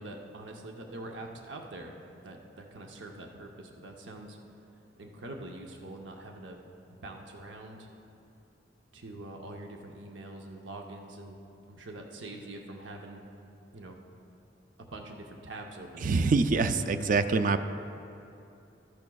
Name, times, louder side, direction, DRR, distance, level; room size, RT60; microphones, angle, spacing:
voice 1, 0.0-1.9 2.2-4.4 5.0-6.6 7.0-7.9 8.9-11.4 11.7-13.2 13.7-14.0 14.8-16.1, right 2 dB, 75° right, 2 dB, 0.7 m, -44 dB
voice 2, 16.0-17.6, right 4 dB, 45° right, 10 dB, 0.4 m, -25 dB
14.0 x 10.5 x 2.3 m, 2.7 s
head